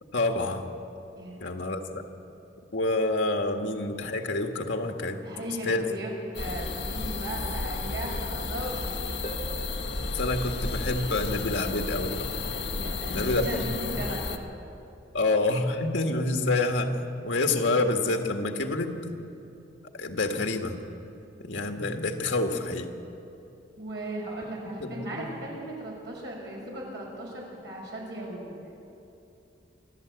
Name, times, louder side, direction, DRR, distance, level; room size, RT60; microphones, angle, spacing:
voice 1, 0.1-0.7 1.4-1.8 2.7-5.9 10.1-12.3 12.8-14.0 15.1-17.0 17.2-18.9 19.9-20.8 21.4-22.9 24.8-25.3, left 2 dB, 85° left, 4 dB, 1.7 m, -28 dB
voice 2, 1.1-1.5 5.2-6.1 6.4-9.2 12.7-14.4 23.8-28.5, right 1 dB, 70° right, -2 dB, 6.3 m, -37 dB
sound 1, 6.3-14.4, left 3 dB, 70° left, 1.3 m, -32 dB
Harp, 9.2-11.7 15.2-15.3, right 2 dB, 40° left, 1.8 m, -45 dB
26.5 x 12.5 x 8.1 m, 2.8 s
head